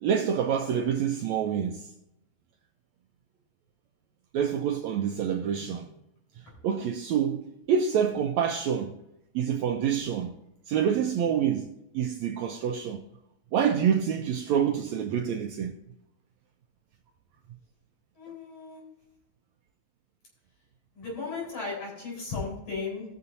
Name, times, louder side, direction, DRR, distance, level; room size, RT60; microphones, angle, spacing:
voice 1, 0.0-1.9 4.3-5.9 6.6-8.9 9.3-10.3 10.7-11.7 11.9-13.0 13.5-15.7, right 8 dB, 80° right, 1.7 m, -27 dB
voice 2, 18.2-18.8 21.0-23.0, left 4 dB, 60° left, 5.8 m, -35 dB
19.0 x 6.7 x 2.7 m
omnidirectional pair, 3.7 m